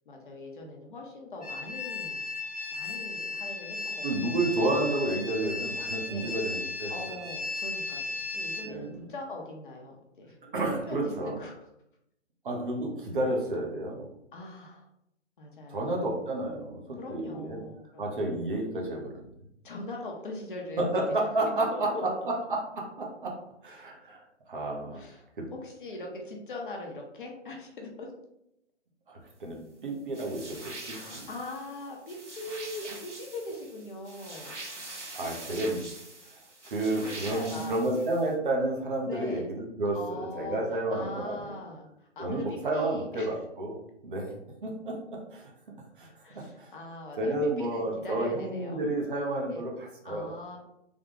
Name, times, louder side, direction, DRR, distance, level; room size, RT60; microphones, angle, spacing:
voice 1, 0.1-2.2 2.7-4.0 4.6-4.8 6.1-6.3 6.9-10.4 10.7-11.5 14.3-14.9 15.4-16.1 17.0-18.2 19.6-22.0 24.9-28.1 30.7-34.6 35.2-35.5 36.7-37.8 39.0-39.5 39.9-43.4 46.2-48.8 49.5-49.6 50.0-50.6, left 2 dB, 45° left, 0 dB, 0.8 m, -41 dB
sound 1, 1.4-8.6, left 3 dB, 5° left, 0.4 m, -35 dB
voice 2, 4.0-6.9 8.6-9.0 10.4-11.4 12.4-14.1 15.7-17.6 18.0-19.3 20.8-21.9 22.5-23.3 23.6-25.0 25.4-25.5 29.1-31.3 35.1-35.8 36.3-36.4 36.6-41.5 42.2-43.8 44.0-44.3 44.6-45.5 46.0-46.7 47.2-50.3, right 1 dB, 45° right, -1 dB, 0.9 m, -31 dB
sound 2, 30.1-38.3, right 2 dB, 75° right, 1.4 m, -44 dB
3.5 x 2.3 x 3.6 m, 0.81 s
figure-of-eight pair, 145°, 36 cm